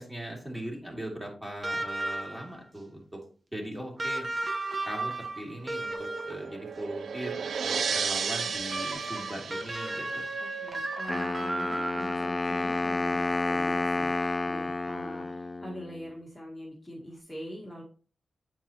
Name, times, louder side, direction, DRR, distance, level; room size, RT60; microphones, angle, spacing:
voice 1, 0.0-3.2 3.5-4.3 4.8-10.2, right 1 dB, 10° right, -1 dB, 2.3 m, -39 dB
sound 1, 1.6-2.6 4.0-6.6 7.9-12.4 13.7-13.8, right 2 dB, 45° right, 1.0 m, -34 dB
sound 2, 5.7-10.8, right 6 dB, 80° right, 0.3 m, -34 dB
voice 2, 10.4-14.1 14.5-17.8, equal, 10° left, -3 dB, 1.6 m, -43 dB
Wind instrument woodwind instrument, 11.1-16.0, left 2 dB, 30° left, 0.4 m, -30 dB
7.6 x 4.6 x 2.8 m, 0.40 s
cardioid pair, 65°, 0 cm